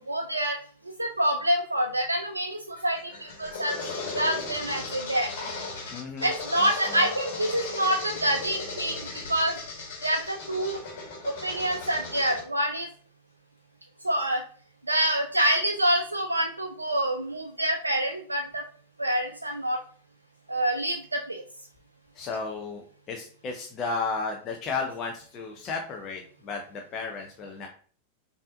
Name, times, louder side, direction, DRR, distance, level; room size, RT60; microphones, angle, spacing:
voice 1, 0.1-0.6 1.0-3.8 4.1-5.3 6.2-9.0 9.3-9.5 10.0-10.8 11.2-12.9 14.0-14.4 14.9-18.6 19.0-19.8 20.5-21.4, right 1 dB, 80° right, 3 dB, 0.4 m, -26 dB
sound 1, 2.8-12.4, left 3 dB, 50° left, 1.4 m, -37 dB
voice 2, 5.9-6.3 6.9-7.1 22.1-27.7, left 4 dB, 30° left, 2 dB, 0.6 m, -33 dB
5.4 x 2.7 x 2.5 m, 0.44 s
figure-of-eight pair, 90°, 0 cm